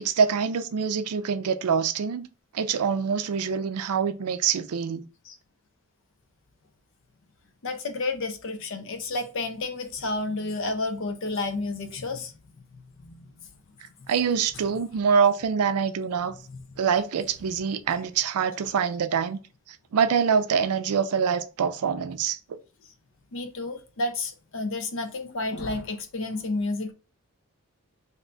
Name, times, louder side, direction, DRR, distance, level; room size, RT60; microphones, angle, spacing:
voice 1, 0.0-2.3 2.5-5.0 14.1-16.3 16.8-19.4 19.9-22.6, right 6 dB, 80° right, 0.4 m, -25 dB
voice 2, 7.6-12.4 13.0-13.5 16.5-16.6 23.3-26.9, left 2 dB, 60° left, 0.5 m, -31 dB
2.7 x 2.2 x 3.8 m
head